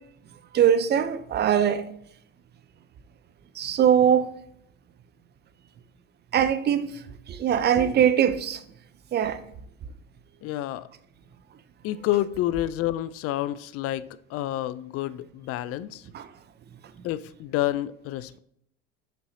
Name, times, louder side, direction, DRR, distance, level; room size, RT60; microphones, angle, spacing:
voice 1, 0.5-1.8 3.5-4.3 6.3-8.6 9.1-9.4 16.1-16.3, right 9 dB, 25° right, 0.6 m, -22 dB
voice 2, 10.4-10.9 11.8-16.0 17.0-18.4, left 14 dB, 35° left, 0.4 m, -29 dB
7.5 x 5.5 x 2.8 m
hypercardioid pair, 95°, 40 cm